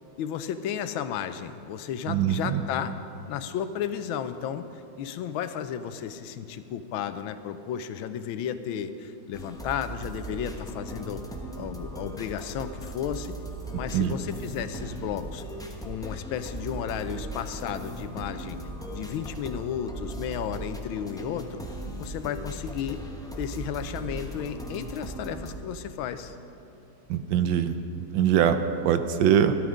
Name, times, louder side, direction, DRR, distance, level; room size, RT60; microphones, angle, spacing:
voice 1, 0.2-3.0 3.3-11.2 11.6-13.3 13.7-15.4 15.8-18.6 18.9-21.6 22.0-23.0 23.4-26.4, left 9 dB, 85° left, 11 dB, 1.5 m, -33 dB
voice 2, 2.1-2.6 13.9-14.2 27.1-27.7 28.1-28.6 28.8-29.6, right 9 dB, 75° right, 9 dB, 1.2 m, -22 dB
sound 1, 9.3-25.5, right 1 dB, 5° left, 0.5 m, -38 dB
12.5 x 12.5 x 5.0 m, 2.6 s
omnidirectional pair, 2.2 m